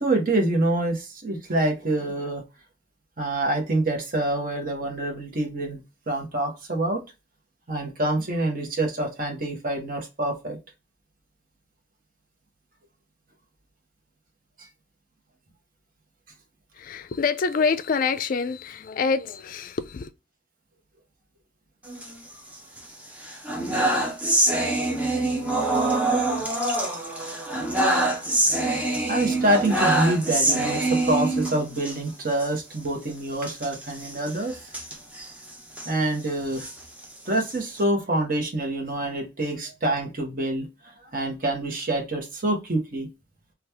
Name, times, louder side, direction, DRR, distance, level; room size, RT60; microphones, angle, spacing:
voice 1, 0.0-2.4 3.2-5.8 6.1-7.0 7.7-10.6 14.6-14.7 29.1-34.6 35.8-36.7 37.3-43.1, right 1 dB, 45° right, 1.0 m, -26 dB
voice 2, 16.8-20.1, left 5 dB, 45° left, 0.3 m, -26 dB
sound 1, 21.8-22.8 23.2-32.0 32.3-32.5 32.7-32.9 33.4-35.9 36.4-37.8, right 2 dB, 5° right, 0.6 m, -25 dB
2.9 x 2.3 x 3.4 m
head